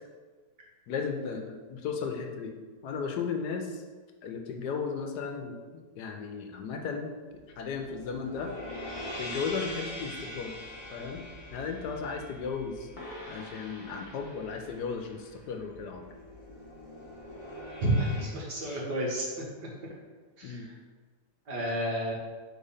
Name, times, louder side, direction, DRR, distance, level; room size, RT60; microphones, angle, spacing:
voice 1, 0.9-2.5 2.8-3.8 4.2-7.1 7.6-8.5 9.2-10.6 10.9-11.2 11.5-12.9 13.3-16.1 18.7-18.8 20.4-20.7, left 5 dB, 70° left, 4 dB, 1.2 m, -35 dB
sound 1, 7.3-18.2, left 1 dB, 20° left, 1.1 m, -43 dB
voice 2, 17.8-19.3 20.4-20.6 21.5-22.1, right 1 dB, 70° right, -3 dB, 2.0 m, -30 dB
5.0 x 3.9 x 5.6 m, 1.4 s
omnidirectional pair, 1.8 m